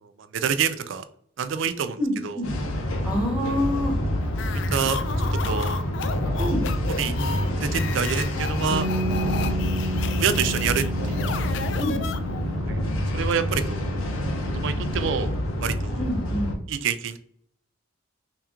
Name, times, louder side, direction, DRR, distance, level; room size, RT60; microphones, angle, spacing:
voice 1, 0.0-1.1 1.4-2.4 4.5-5.0 5.5-5.8 6.9-7.1 7.6-8.9 10.0-11.3 12.7-12.8 13.1-14.0 14.5-16.0 16.7-17.2, right 7 dB, 60° right, 11 dB, 0.3 m, -27 dB
voice 2, 2.0-2.5 3.0-4.0 6.4-6.6 11.8-12.0 16.0-16.5, left 1 dB, 5° right, -2 dB, 1.0 m, -26 dB
sound 1, 2.4-16.5, left 1 dB, 80° left, 0.7 m, -27 dB
sound 2, 4.3-12.6, left 5 dB, 55° left, 0.3 m, -34 dB
Bass guitar, 8.7-14.9, right 1 dB, 90° right, 1.3 m, -33 dB
3.4 x 2.9 x 3.5 m, 0.65 s
head